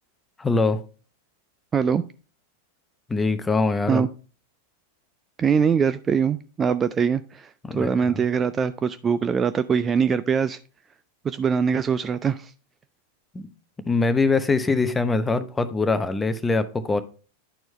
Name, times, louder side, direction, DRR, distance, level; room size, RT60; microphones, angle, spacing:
voice 1, 0.4-0.8 3.1-4.0 7.6-7.9 13.3-13.5 13.9-17.0, left 3 dB, 10° left, 0.8 m, -23 dB
voice 2, 1.7-2.0 3.9-4.1 5.4-10.6 11.2-12.5, right 6 dB, 20° right, 0.4 m, -23 dB
11.0 x 4.5 x 3.1 m
figure-of-eight pair, 90°, 0 cm